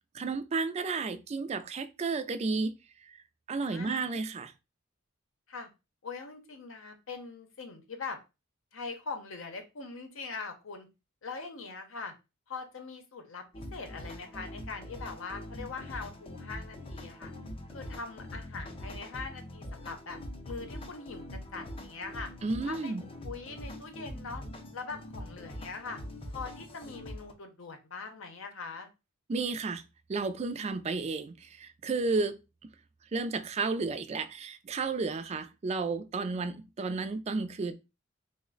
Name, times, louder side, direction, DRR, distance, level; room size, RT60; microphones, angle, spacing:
voice 1, 0.1-3.2 3.5-4.5 22.4-23.0 29.3-29.8 30.1-32.4 33.1-37.7, right 4 dB, 30° right, 0.3 m, -32 dB
voice 2, 3.6-4.1 5.5-5.7 6.0-8.2 8.7-10.9 11.2-12.1 12.5-17.3 17.7-20.2 20.4-21.2 21.5-22.3 22.7-22.9 23.2-24.4 24.7-26.0 26.3-28.9, left 4 dB, 70° left, 0.7 m, -42 dB
sound 1, 13.5-27.3, left 1 dB, 25° left, 0.5 m, -43 dB
3.1 x 2.1 x 3.8 m
head